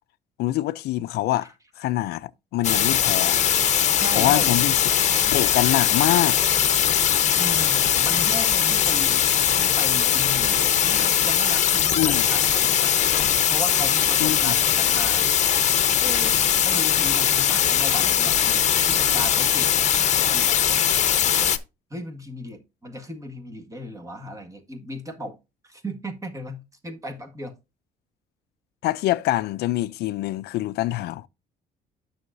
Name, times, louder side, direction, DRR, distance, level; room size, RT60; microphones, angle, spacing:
voice 1, 0.4-1.5 1.8-3.4 4.2-4.8 5.3-6.4 12.0-12.3 14.2-14.5 28.8-31.3, left 15 dB, 75° left, 0.4 m, -24 dB
sound 1, 2.6-21.6, left 9 dB, 45° left, 0.8 m, -20 dB
voice 2, 4.0-4.5 7.4-9.3 9.6-12.9 13.5-15.3 16.0-19.9 20.2-20.6 21.9-25.4 25.6-27.6, equal, 20° right, 1.6 m, -36 dB
9.6 x 6.4 x 2.6 m
cardioid pair, 110°, 17 cm